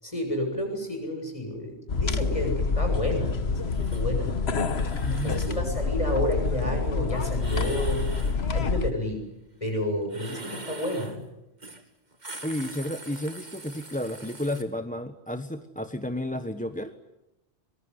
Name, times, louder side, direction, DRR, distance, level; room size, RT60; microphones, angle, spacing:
voice 1, 0.0-4.4 5.2-8.1 8.5-9.2 9.6-11.3, left 1 dB, 30° left, 3 dB, 7.9 m, -30 dB
sound 1, 1.9-8.9, left 4 dB, 70° left, 1.5 m, -27 dB
sound 2, 3.7-4.0 4.7-5.6 7.4-8.4 10.1-11.2 11.6-11.8 12.1-14.6, right 2 dB, 40° right, 2.5 m, -43 dB
voice 2, 4.9-5.4 12.4-17.0, left 1 dB, 5° left, 8 dB, 1.2 m, -32 dB
24.5 x 23.0 x 9.8 m, 0.93 s
omnidirectional pair, 1.1 m